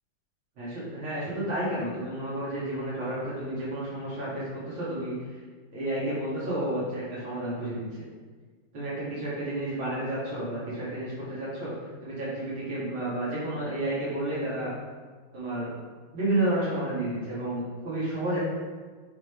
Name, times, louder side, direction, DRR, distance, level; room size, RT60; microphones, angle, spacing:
voice 1, 0.6-5.4 5.7-8.0 8.7-11.7 12.0-14.7 15.3-15.7 16.1-18.4, right 1 dB, 80° right, -10 dB, 3.3 m, -31 dB
8.0 x 3.9 x 4.7 m, 1.5 s
omnidirectional pair, 2.3 m